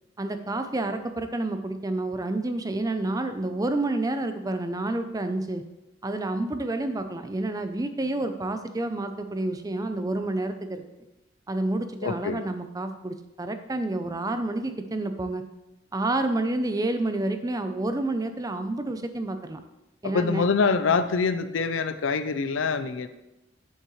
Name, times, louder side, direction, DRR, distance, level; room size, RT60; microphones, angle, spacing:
voice 1, 0.2-5.6 6.0-10.8 11.5-15.4 15.9-19.6 20.0-20.4, right 2 dB, 20° right, 8 dB, 0.5 m, -29 dB
voice 2, 12.0-12.4 20.0-23.1, left 5 dB, 85° left, 11 dB, 0.5 m, -25 dB
8.4 x 7.3 x 3.1 m, 0.95 s
head